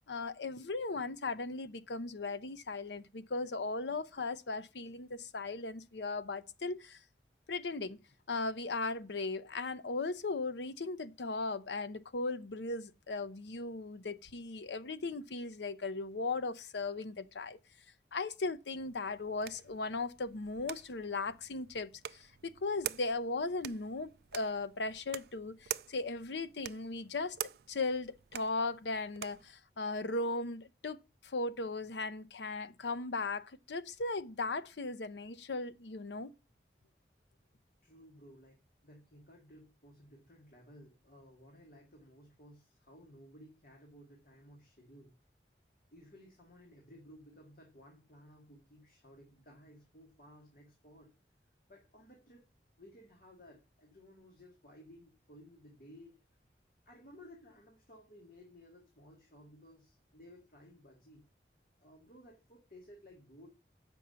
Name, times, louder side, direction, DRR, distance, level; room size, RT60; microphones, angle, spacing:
voice 1, 0.1-7.0 7.5-8.0 8.3-17.6 18.1-36.3, left 3 dB, 90° left, 0.7 m, -37 dB
sound 1, 18.8-29.5, right 11 dB, 65° right, 0.3 m, -47 dB
voice 2, 37.8-38.6 38.8-45.1 45.9-51.1 51.7-52.4 52.8-56.2 56.9-61.2 61.8-63.5, equal, 55° left, 2.1 m, -57 dB
7.5 x 5.4 x 6.8 m
head